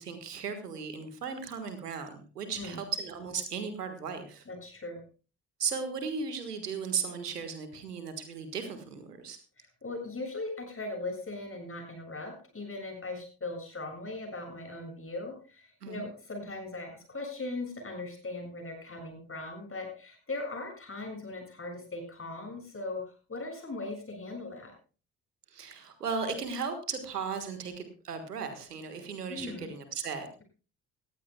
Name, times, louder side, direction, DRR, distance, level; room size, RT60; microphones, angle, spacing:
voice 1, 0.0-4.4 5.6-9.4 15.8-16.0 25.5-30.3, right 5 dB, 90° right, 8 dB, 1.6 m, -36 dB
voice 2, 2.5-2.8 4.5-5.0 9.6-24.7 29.3-29.7, left 2 dB, 30° left, 2 dB, 7.2 m, -39 dB
19.5 x 14.5 x 2.3 m, 0.35 s
figure-of-eight pair, 50°, 46 cm